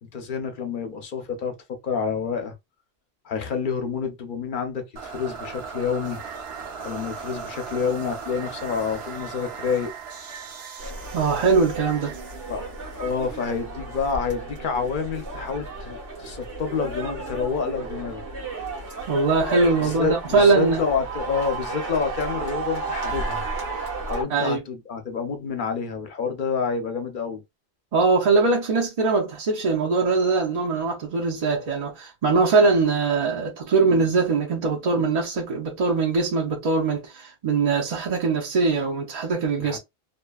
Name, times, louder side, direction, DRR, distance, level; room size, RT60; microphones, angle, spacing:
voice 1, 0.0-2.5 3.2-6.2 6.8-9.9 12.5-12.7 13.0-18.2 19.8-23.4 24.1-27.4 39.6-39.8, left 5 dB, 55° left, 0.7 m, -28 dB
sound 1, 5.0-14.0, right 5 dB, 65° right, 0.9 m, -38 dB
sound 2, 10.8-24.2, right 3 dB, 80° right, 1.3 m, -33 dB
voice 2, 11.1-12.1 19.1-20.8 24.3-24.6 27.9-39.8, right 4 dB, 45° right, 0.5 m, -22 dB
2.8 x 2.1 x 2.3 m
omnidirectional pair, 1.2 m